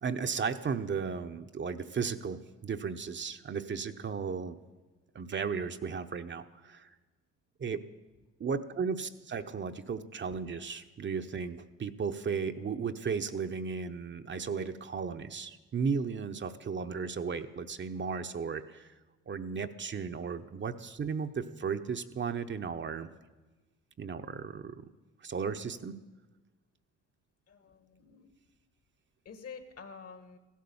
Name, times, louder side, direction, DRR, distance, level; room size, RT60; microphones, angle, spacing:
voice 1, 0.0-4.6 5.1-6.9 7.6-7.8 8.4-18.9 19.3-23.1 24.0-24.7 25.2-26.0, right 5 dB, 40° right, 7 dB, 0.8 m, -35 dB
voice 2, 27.5-28.3 29.2-30.4, left 5 dB, 55° left, 9 dB, 1.7 m, -48 dB
15.5 x 12.0 x 7.1 m, 1.2 s
cardioid pair, 90°, 30 cm